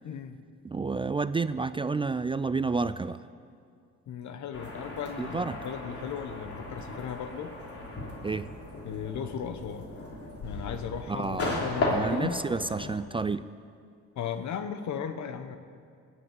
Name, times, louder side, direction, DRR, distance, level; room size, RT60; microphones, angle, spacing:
voice 1, 0.0-0.4 4.1-7.5 8.8-9.9 10.4-12.4 14.1-15.6, left 7 dB, 70° left, 9 dB, 1.2 m, -36 dB
voice 2, 0.6-3.2 5.2-5.6 8.2-8.5 11.1-11.6 11.9-13.4, right 4 dB, 20° right, 13 dB, 0.3 m, -30 dB
sound 1, 4.5-12.9, left 2 dB, 50° left, 3.1 m, -36 dB
20.0 x 8.0 x 8.2 m, 2.3 s
cardioid pair, 90°, 30 cm